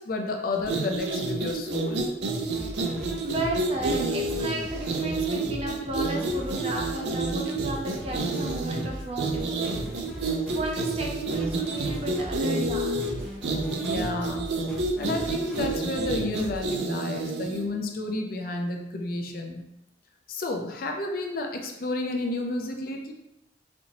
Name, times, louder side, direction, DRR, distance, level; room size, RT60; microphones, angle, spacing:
voice 1, 0.0-2.1 13.8-14.6 15.0-19.6 20.3-23.1, left 2 dB, 55° left, 3 dB, 0.5 m, -31 dB
sound 1, 0.6-17.7, right 2 dB, 70° right, 0.5 m, -29 dB
sound 2, 2.5-16.6, equal, 5° left, 0.9 m, -39 dB
voice 2, 3.2-12.9, right 1 dB, 35° right, -1 dB, 0.6 m, -34 dB
4.2 x 2.7 x 2.9 m, 0.86 s
head